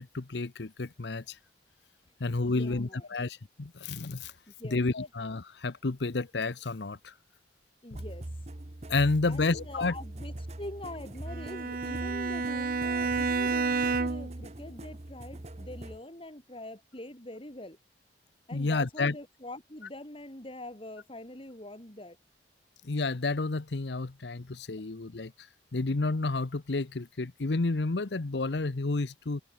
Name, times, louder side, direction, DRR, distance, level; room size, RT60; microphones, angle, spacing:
voice 1, 0.0-1.4 2.2-4.3 4.7-7.1 8.9-9.9 18.5-19.1 22.8-25.5 25.7-29.4, left 3 dB, 70° left, 0.8 m, -30 dB
voice 2, 2.4-3.1 4.5-4.8 7.8-8.3 9.2-17.8 18.5-22.2, left 1 dB, 30° left, 4.0 m, -44 dB
sound 1, 7.9-16.0, right 1 dB, 35° right, 1.2 m, -42 dB
Bowed string instrument, 11.3-14.4, right 4 dB, 55° right, 0.7 m, -30 dB
head